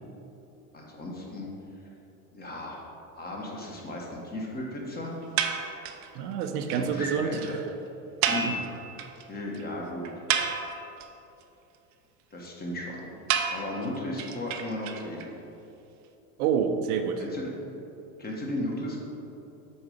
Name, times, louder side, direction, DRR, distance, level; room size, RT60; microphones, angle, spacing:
voice 1, 0.7-1.5 2.3-2.8 3.1-5.1 6.7-7.6 8.3-8.6 9.3-10.1 12.3-13.0 13.5-15.3 17.2-17.5 18.2-19.0, left 1 dB, 20° left, -2 dB, 1.3 m, -35 dB
sound 1, 5.4-6.1 6.4-6.5 6.7-6.8 7.1-7.2 7.4-7.5 8.2-9.2 9.5-9.6 10.0-11.0 13.3-15.3, right 7 dB, 40° right, 0.5 m, -29 dB
voice 2, 6.1-7.4 8.5-8.6 16.4-17.2, right 7 dB, 75° right, 6 dB, 0.7 m, -27 dB
7.1 x 4.1 x 5.0 m, 2.9 s
supercardioid pair, 125°, 45 cm